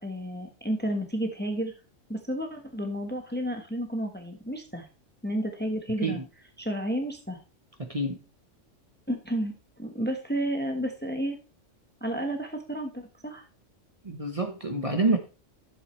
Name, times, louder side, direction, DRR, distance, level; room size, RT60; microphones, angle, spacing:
voice 1, 0.0-1.7 2.1-4.9 5.2-6.2 6.6-7.4 9.1-11.4 12.0-13.4, right 1 dB, 10° left, 4 dB, 1.1 m, -31 dB
voice 2, 7.8-8.2 14.0-15.2, right 2 dB, 30° right, 4 dB, 1.1 m, -27 dB
11.5 x 7.5 x 3.2 m, 0.33 s
omnidirectional pair, 1.3 m